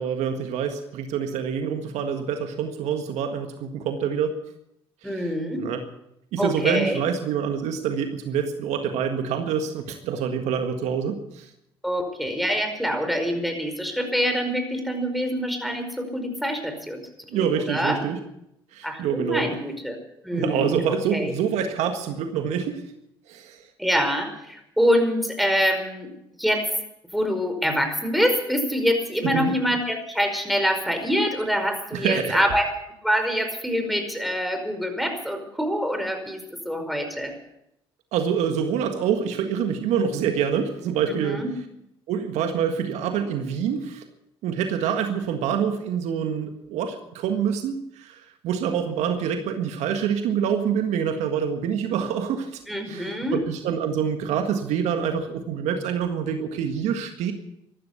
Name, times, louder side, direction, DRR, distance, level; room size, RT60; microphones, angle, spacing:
voice 1, 0.0-4.4 5.0-5.3 5.6-5.8 6.3-11.5 17.3-18.2 18.7-19.4 20.3-22.8 23.3-23.6 29.2-29.5 31.9-32.4 38.1-41.4 42.1-44.0 44.4-52.6 52.9-57.3, right 7 dB, 70° right, 6 dB, 1.7 m, -26 dB
voice 2, 5.0-5.6 6.4-7.0 11.8-18.0 18.8-20.0 20.2-20.8 21.1-21.3 23.8-26.1 26.4-26.6 27.1-32.7 33.0-36.4 36.6-37.3 41.0-41.5 52.7-53.4, equal, ahead, 5 dB, 5.0 m, -25 dB
14.5 x 12.0 x 8.3 m, 0.81 s
hypercardioid pair, 55°, 12 cm